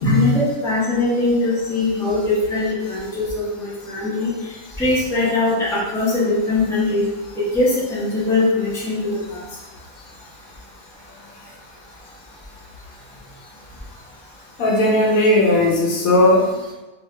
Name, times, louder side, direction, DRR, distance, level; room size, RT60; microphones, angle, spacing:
voice 1, 0.0-3.3 3.5-4.3 4.8-7.0 7.4-9.4, left 2 dB, 5° left, -8 dB, 0.6 m, -21 dB
voice 2, 14.6-16.7, left 1 dB, 70° left, -3 dB, 1.1 m, -17 dB
2.8 x 2.8 x 3.2 m, 1.1 s
omnidirectional pair, 1.5 m